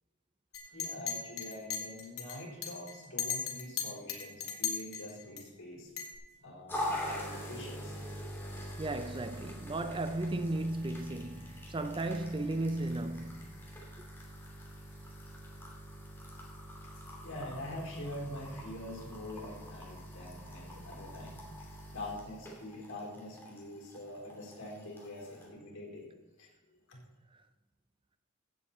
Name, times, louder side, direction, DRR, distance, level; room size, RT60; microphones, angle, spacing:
Chink clink, 0.5-5.4 6.0-6.2, left 7 dB, 90° left, 2.1 m, -37 dB
voice 1, 0.6-5.9 6.4-8.4 8.7-8.8 16.9-26.1 26.4-26.5 26.9-27.0, left 1 dB, 60° left, 4.3 m, -45 dB
sound 1, 6.7-25.5, equal, 10° left, 2.6 m, -44 dB
voice 2, 8.8-13.5, right 2 dB, 25° right, 0.5 m, -35 dB
15.5 x 8.0 x 4.3 m
head